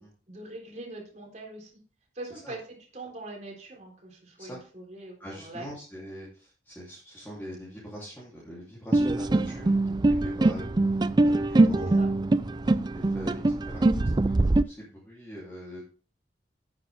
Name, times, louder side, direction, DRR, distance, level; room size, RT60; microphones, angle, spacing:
voice 1, 0.3-1.7 2.1-5.7 11.8-12.1, right 2 dB, 40° right, 0 dB, 3.7 m, -42 dB
voice 2, 5.2-10.8 11.2-12.0 12.6-13.9 14.2-14.3 14.6-15.8, equal, 10° left, -7 dB, 3.1 m, -43 dB
sound 1, 8.9-14.6, right 2 dB, 25° right, 0.3 m, -23 dB
10.5 x 9.0 x 3.5 m, 0.37 s
head